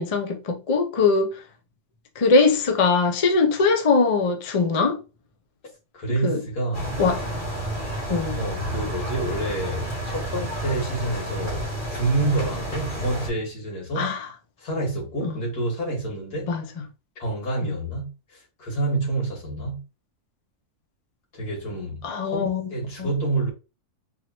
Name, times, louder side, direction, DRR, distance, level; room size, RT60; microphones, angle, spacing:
voice 1, 0.0-1.3 2.2-5.0 6.2-6.4 7.0-7.2 8.1-8.4 14.0-14.3 15.2-15.4 16.5-16.6 17.6-17.8 22.0-22.6 23.0-23.1, left 4 dB, 50° left, 0.4 m, -21 dB
voice 2, 5.9-7.0 8.4-14.1 14.6-16.5 17.2-19.8 21.3-23.5, right 2 dB, 85° left, 2.6 m, -28 dB
sound 1, 6.7-13.3, right 1 dB, 35° left, 1.8 m, -30 dB
4.1 x 3.0 x 3.0 m
omnidirectional pair, 1.6 m